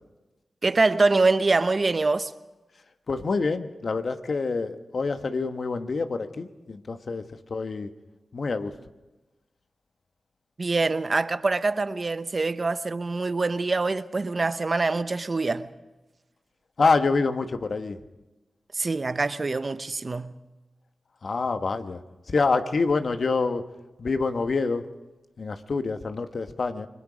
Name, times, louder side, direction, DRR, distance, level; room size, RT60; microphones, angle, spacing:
voice 1, 0.6-2.3 10.6-15.7 18.7-20.3, right 3 dB, 50° right, 0.9 m, -24 dB
voice 2, 3.1-7.2 7.5-7.9 8.3-8.7 16.8-18.0 21.2-22.0 22.3-23.6 24.0-24.9 25.4-26.9, left 4 dB, 65° left, 1.3 m, -26 dB
29.0 x 21.5 x 5.1 m
cardioid pair, 50°, 0 cm